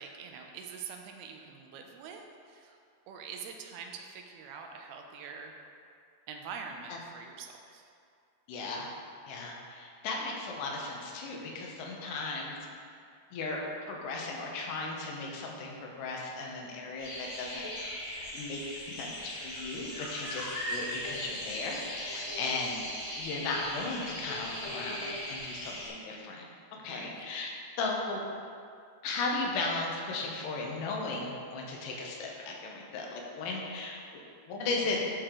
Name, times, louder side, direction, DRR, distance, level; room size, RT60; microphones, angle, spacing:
voice 1, 0.0-2.8 3.1-5.5 6.3-7.9 20.2-20.3 22.1-22.3 26.8-27.2, right 6 dB, 80° right, 3 dB, 2.5 m, -45 dB
voice 2, 8.5-8.9 9.3-12.6 13.3-13.6 13.9-22.8 23.1-26.4 26.8-27.5 27.8-28.2 29.0-34.2 34.5-35.0, left 3 dB, 80° left, -1 dB, 3.0 m, -36 dB
sound 1, 17.0-25.9, equal, 50° left, 2.8 m, -39 dB
11.5 x 4.7 x 3.7 m, 2.3 s
omnidirectional pair, 4.7 m